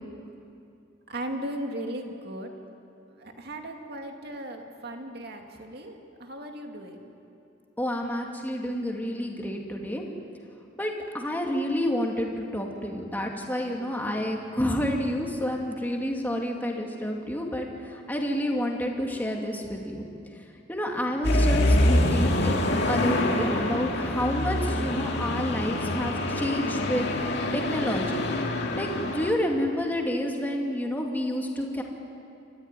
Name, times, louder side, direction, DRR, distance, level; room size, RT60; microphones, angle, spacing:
voice 1, 1.1-2.5 3.1-7.1, right 1 dB, 55° right, 3 dB, 2.4 m, -37 dB
voice 2, 7.8-10.1 10.8-20.1 20.7-22.5 22.9-27.1 27.5-28.2 28.5-31.8, equal, 10° left, 0 dB, 2.4 m, -29 dB
sound 1, 21.2-29.3, left 1 dB, 55° left, 2.2 m, -25 dB
28.0 x 14.5 x 9.8 m, 2.6 s
head